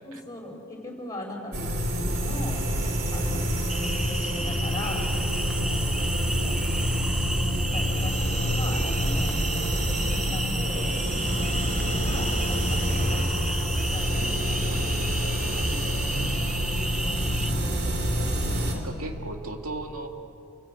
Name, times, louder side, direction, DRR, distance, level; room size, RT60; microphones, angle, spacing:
voice 1, 0.0-2.7 3.1-3.6 4.0-5.1 5.6-6.6 7.3-9.4 9.7-14.9 15.5-16.4 16.7-17.7, left 1 dB, 15° left, 0 dB, 4.6 m, -39 dB
sound 1, 1.5-18.7, equal, 50° right, 3.0 m, -27 dB
sound 2, 3.7-17.5, equal, ahead, 0.6 m, -34 dB
voice 2, 16.1-16.8 18.7-20.1, right 2 dB, 75° right, 4 dB, 2.1 m, -36 dB
27.5 x 17.0 x 8.8 m, 2.7 s
head